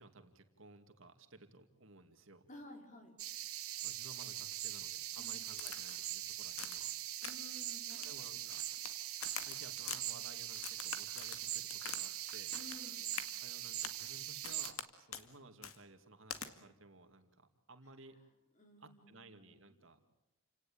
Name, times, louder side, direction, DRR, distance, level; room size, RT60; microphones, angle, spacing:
voice 1, 0.0-2.5 3.8-6.9 7.9-8.6 9.5-12.5 13.4-18.2 18.8-20.0, right 2 dB, 60° right, 6 dB, 2.4 m, -57 dB
voice 2, 2.5-3.2 5.2-5.3 7.2-8.4 12.5-13.1 18.1-18.2 18.5-19.8, left 1 dB, 35° left, 3 dB, 4.7 m, -55 dB
sound 1, 3.2-14.7, right 13 dB, 85° right, 2.0 m, -42 dB
Crack, 5.6-6.1 6.6-6.9 7.2-7.6 7.9-8.9 9.2-10.0 10.5-12.0 12.3-12.8 13.1-13.3 13.8-14.0 14.4-14.9 15.1-15.3 15.6-15.8 16.3-16.5, left 8 dB, 75° left, 2.1 m, -45 dB
29.5 x 18.0 x 8.7 m, 0.92 s
head